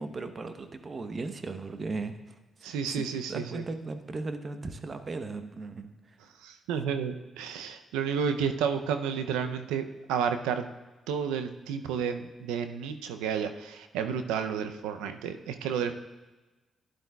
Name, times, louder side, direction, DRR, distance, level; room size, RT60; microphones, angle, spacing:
voice 1, 0.0-6.2, right 3 dB, 45° right, 8 dB, 0.9 m, -37 dB
voice 2, 2.6-3.6 6.4-10.7 11.1-15.9, right 7 dB, 90° right, 8 dB, 0.5 m, -31 dB
12.5 x 10.5 x 2.3 m, 1.2 s
supercardioid pair, 50°, 0 cm